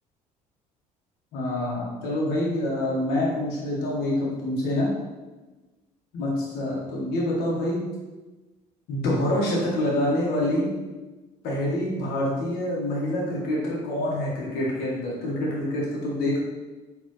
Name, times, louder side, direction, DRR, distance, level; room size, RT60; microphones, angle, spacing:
voice 1, 1.3-4.9 6.1-7.8 8.9-10.7 11.4-16.4, left 1 dB, 70° left, -4 dB, 1.5 m, -26 dB
4.2 x 3.4 x 3.2 m, 1.2 s
supercardioid pair, 80°, 16 cm